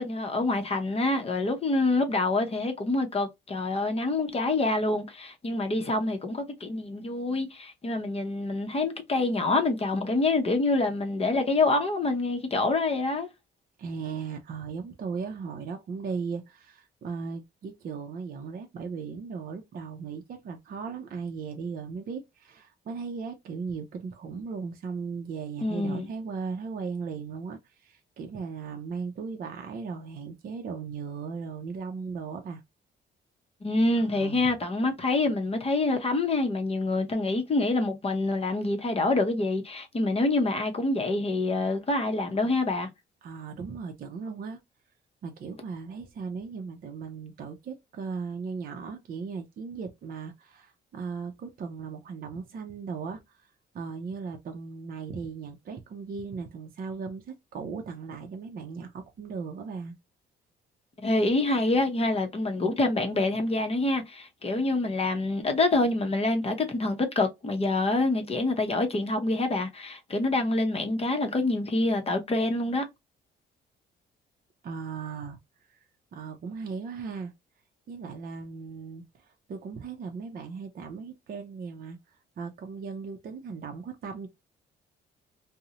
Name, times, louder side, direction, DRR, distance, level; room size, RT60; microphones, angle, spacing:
voice 1, 0.0-13.3 25.6-26.1 33.6-42.9 61.0-72.8, left 2 dB, 30° left, 0.7 m, -26 dB
voice 2, 13.8-32.6 33.9-34.5 43.2-44.6 45.2-53.5 53.7-60.0 74.6-75.4 75.7-75.8 76.1-77.3 77.9-84.3, right 5 dB, 50° right, 0.5 m, -37 dB
2.5 x 2.0 x 2.8 m
cardioid pair, 90°, 20 cm